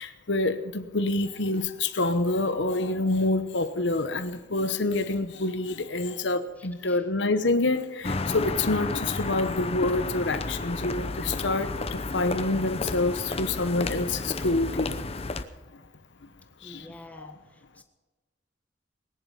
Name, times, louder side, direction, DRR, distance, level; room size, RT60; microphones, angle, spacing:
voice 1, 0.0-14.9 16.6-16.9 17.1-17.3, left 2 dB, 75° left, 10 dB, 1.0 m, -27 dB
voice 2, 6.6-7.0 16.6-17.8, left 1 dB, 10° left, 5 dB, 1.5 m, -49 dB
sound 1, 8.0-15.4, left 3 dB, 35° left, 0.8 m, -32 dB
19.5 x 10.5 x 5.6 m, 1.3 s
head